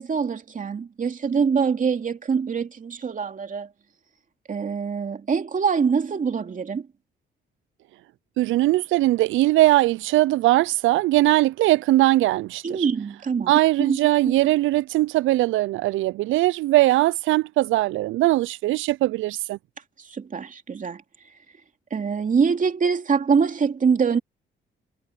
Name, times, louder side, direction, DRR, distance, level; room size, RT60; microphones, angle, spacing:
voice 1, 0.0-3.7 4.5-6.9 12.6-13.5 13.8-14.0 14.2-14.3 20.1-21.0 21.9-24.2, right 6 dB, 40° right, 2.8 m, -24 dB
voice 2, 8.4-12.9 13.5-19.6, right 17 dB, 80° right, 0.4 m, -20 dB
cardioid pair, 90°, 20 cm